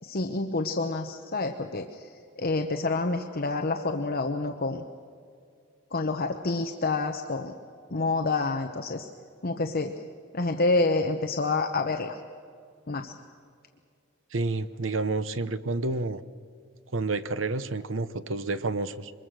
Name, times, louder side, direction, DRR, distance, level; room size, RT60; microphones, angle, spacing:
voice 1, 0.0-4.8 5.9-7.5 7.9-9.1 9.4-10.0 10.3-12.2 12.9-13.1, left 3 dB, 50° left, 5 dB, 1.0 m, -28 dB
voice 2, 14.3-16.2 16.9-19.1, right 3 dB, 70° right, 13 dB, 0.9 m, -29 dB
25.0 x 21.5 x 6.4 m, 2.3 s
head